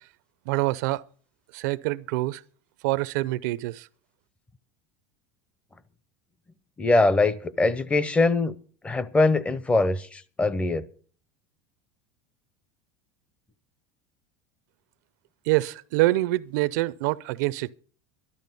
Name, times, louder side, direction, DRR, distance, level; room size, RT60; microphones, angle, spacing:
voice 1, 0.5-1.0 1.5-2.4 2.8-3.9 15.5-17.7, right 19 dB, 75° right, 0.5 m, -25 dB
voice 2, 6.8-8.6 8.8-10.8, left 3 dB, 10° left, 0.5 m, -22 dB
12.5 x 12.0 x 5.3 m
cardioid pair, 155°, 9 cm